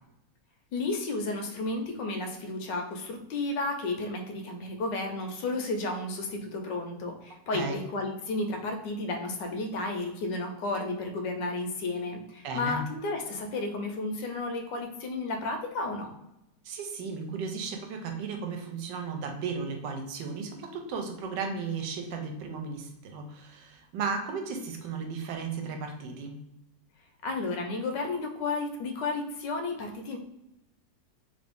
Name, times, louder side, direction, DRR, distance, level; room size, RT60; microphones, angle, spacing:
voice 1, 0.7-16.1 27.2-30.2, left 2 dB, 85° left, 3 dB, 1.4 m, -32 dB
voice 2, 12.4-12.8 16.6-26.4, right 5 dB, 85° right, 4 dB, 1.3 m, -35 dB
3.3 x 2.6 x 3.5 m, 0.87 s
omnidirectional pair, 1.9 m